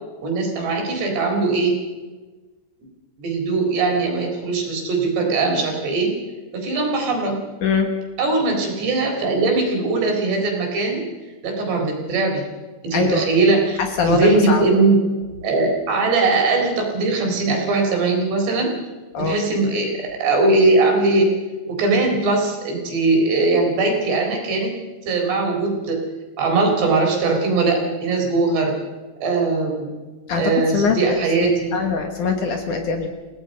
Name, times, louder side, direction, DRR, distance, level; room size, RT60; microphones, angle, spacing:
voice 1, 0.2-1.7 3.2-6.1 6.5-7.4 8.2-11.0 11.4-12.4 12.8-15.0 15.4-18.7 19.2-21.3 21.7-24.7 25.1-26.0 26.4-28.7 29.2-29.9 30.4-31.8, right 3 dB, 80° right, 1 dB, 6.1 m, -20 dB
voice 2, 7.6-7.9 12.9-13.3 14.0-14.6 19.1-19.4 30.3-30.4 30.7-33.1, left 4 dB, 60° left, 4 dB, 2.5 m, -22 dB
28.0 x 17.5 x 5.4 m, 1.3 s
omnidirectional pair, 4.8 m